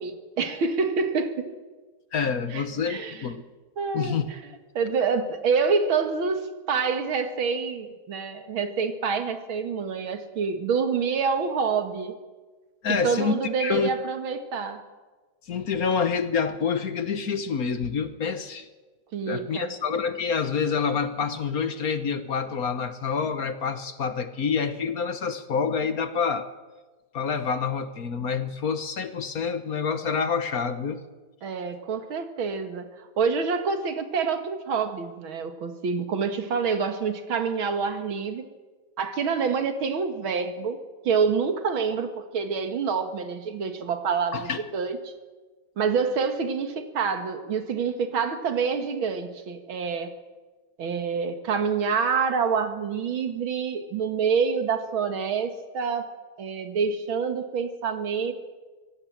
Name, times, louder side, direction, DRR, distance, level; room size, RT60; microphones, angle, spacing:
voice 1, 0.0-1.5 2.5-3.3 3.8-4.2 4.7-12.1 12.9-14.8 19.1-19.7 31.4-38.5 39.0-40.8 41.0-45.1 45.8-50.1 50.8-56.1 56.4-58.3, right 5 dB, 90° right, 8 dB, 2.5 m, -27 dB
voice 2, 2.1-3.4 3.9-4.3 12.8-13.3 13.6-13.9 15.5-18.7 19.2-26.5 27.1-31.0 44.3-44.6, left 6 dB, 50° left, 11 dB, 1.4 m, -27 dB
24.0 x 17.0 x 7.4 m, 1.3 s
omnidirectional pair, 2.2 m